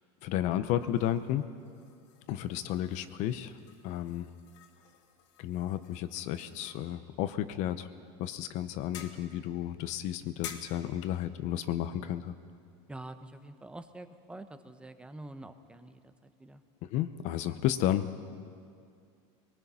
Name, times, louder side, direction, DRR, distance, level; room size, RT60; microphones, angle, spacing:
voice 1, 0.2-1.5 2.3-4.3 5.4-7.9 8.2-12.3 16.9-18.1, left 12 dB, 50° left, 11 dB, 0.9 m, -32 dB
sound 1, 0.8-13.9, left 9 dB, 85° left, 1.8 m, -53 dB
voice 2, 12.9-16.1 16.4-16.6, right 2 dB, 5° right, 9 dB, 0.9 m, -46 dB
24.0 x 19.0 x 5.7 m, 2.3 s
supercardioid pair, 140°, 15 cm